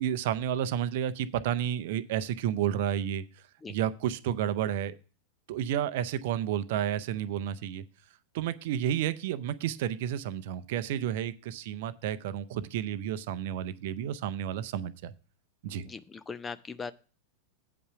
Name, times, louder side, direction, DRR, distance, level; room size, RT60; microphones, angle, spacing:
voice 1, 0.0-3.2 3.7-4.9 5.5-7.8 8.3-15.1 15.6-15.8, right 10 dB, 50° right, 15 dB, 0.6 m, -31 dB
voice 2, 15.8-16.9, left 5 dB, 15° left, 14 dB, 0.5 m, -39 dB
8.5 x 5.5 x 5.7 m, 0.35 s
figure-of-eight pair, 90°, 0 cm